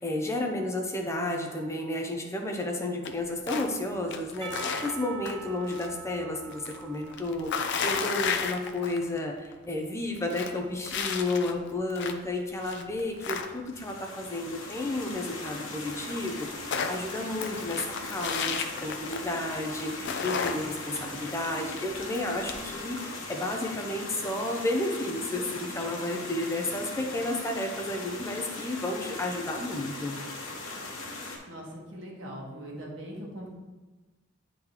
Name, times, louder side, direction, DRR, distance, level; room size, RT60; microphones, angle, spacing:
voice 1, 0.0-30.2, left 1 dB, 15° left, 2 dB, 0.5 m, -32 dB
sound 1, 3.0-3.8 4.1-5.9 6.2-9.2 9.5-9.6 10.0-12.3 12.6-13.9 15.4-15.5 15.7-15.8 16.1-19.5 19.7-22.7, left 6 dB, 60° left, 0.5 m, -33 dB
Percussion, 4.4-8.3, right 8 dB, 25° right, 0.7 m, -44 dB
sound 2, 13.7-31.4, left 3 dB, 90° left, 1.1 m, -39 dB
voice 2, 31.5-33.5, equal, 65° right, -2 dB, 1.4 m, -41 dB
9.5 x 3.8 x 2.9 m, 1.2 s
head